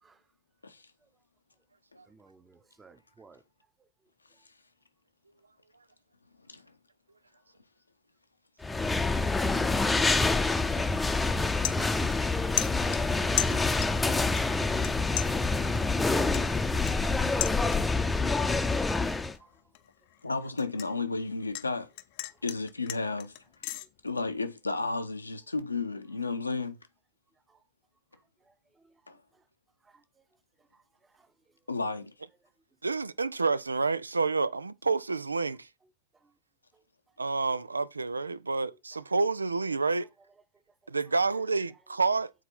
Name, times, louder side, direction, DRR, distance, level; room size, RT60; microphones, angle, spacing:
voice 1, 2.1-3.4 19.4-19.5 27.5-27.6 28.5-28.6 28.8-28.9 29.8-30.0 30.7-30.8 31.1-31.3 36.2-36.3, right 4 dB, 15° right, 0.9 m, -60 dB
sound 1, 8.6-19.3, left 3 dB, 10° left, 0.7 m, -27 dB
sound 2, 11.6-12.3 12.6-14.1 14.4-14.9 15.2-18.1 18.5-18.8 19.2-21.7 22.0-23.9, left 16 dB, 45° left, 0.7 m, -36 dB
voice 2, 20.2-21.9 22.4-23.3 24.0-26.8 29.1-29.2 31.7-32.1, left 3 dB, 80° left, 0.9 m, -33 dB
voice 3, 32.8-35.7 37.2-40.1 40.9-42.3, right 4 dB, 80° right, 0.4 m, -29 dB
9.1 x 4.4 x 4.3 m
figure-of-eight pair, 90°, 0 cm